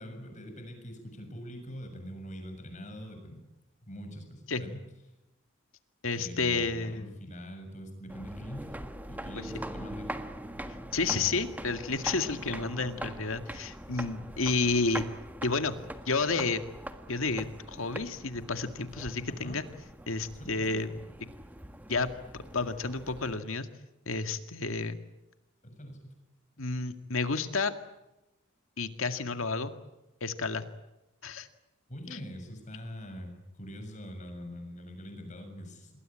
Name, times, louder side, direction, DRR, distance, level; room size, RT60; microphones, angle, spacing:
voice 1, 0.0-3.4 3.8-4.8 6.1-8.8 9.1-10.3 19.3-19.6 20.4-21.0 25.6-26.1 31.9-35.9, equal, 35° left, 5 dB, 7.1 m, -43 dB
voice 2, 6.0-7.1 10.9-15.1 15.4-15.8 16.1-16.6 17.1-19.6 20.1-20.9 21.9-23.7 24.1-25.0 26.6-27.7 28.8-29.7 30.2-30.6 31.2-31.5 32.1-32.2, left 3 dB, 75° left, 9 dB, 2.0 m, -31 dB
sound 1, 8.1-23.4, right 1 dB, 10° right, 1.6 m, -42 dB
27.5 x 21.0 x 8.8 m, 0.96 s
head